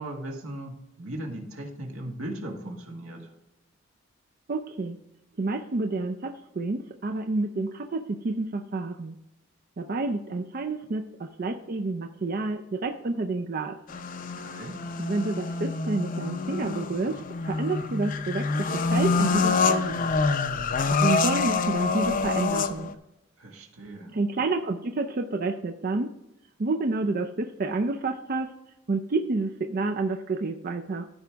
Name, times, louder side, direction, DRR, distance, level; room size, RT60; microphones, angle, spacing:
voice 1, 0.0-3.3 14.2-14.8 23.4-24.2, right 1 dB, 80° right, 1 dB, 1.9 m, -38 dB
voice 2, 4.5-5.0 5.4-9.2 9.8-13.8 15.0-20.0 20.9-22.9 24.1-26.1 26.6-28.5 28.9-31.1, right 3 dB, 40° right, 6 dB, 0.4 m, -29 dB
car race car citroen race screeching tires, 13.9-22.9, left 4 dB, 40° left, 0.5 m, -26 dB
14.0 x 5.0 x 3.5 m, 0.92 s
head